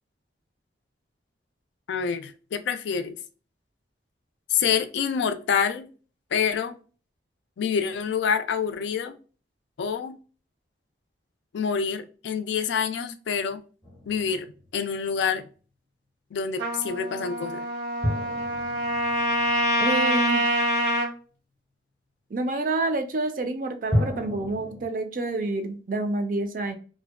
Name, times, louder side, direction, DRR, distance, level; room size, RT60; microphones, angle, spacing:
voice 1, 1.9-3.2 4.5-5.9 6.3-6.8 7.6-9.1 9.8-10.2 11.5-13.6 14.1-14.5 14.7-15.5 16.3-17.6, left 6 dB, 80° left, 0.3 m, -27 dB
sound 1, 13.8-15.2 18.0-20.6 23.9-24.9, equal, 15° left, 0.6 m, -31 dB
Trumpet, 16.6-21.1, equal, 85° right, 0.9 m, -25 dB
voice 2, 19.8-20.5 22.3-26.8, right 2 dB, 45° right, 0.4 m, -28 dB
2.6 x 2.1 x 2.3 m
head